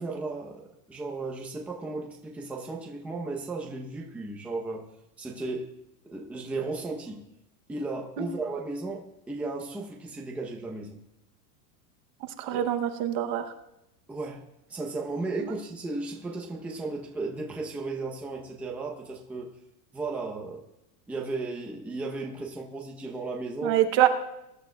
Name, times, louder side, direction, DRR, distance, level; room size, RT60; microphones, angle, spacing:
voice 1, 0.0-4.9 5.2-5.7 6.0-7.2 7.7-11.0 12.5-12.6 14.1-14.4 14.7-19.5 19.9-20.6 21.1-23.8, right 3 dB, 5° right, -1 dB, 0.7 m, -35 dB
voice 2, 12.4-13.5 15.4-15.5 23.6-24.1, right 12 dB, 35° right, 8 dB, 0.8 m, -25 dB
21.5 x 11.5 x 2.3 m, 0.87 s
supercardioid pair, 165°, 46 cm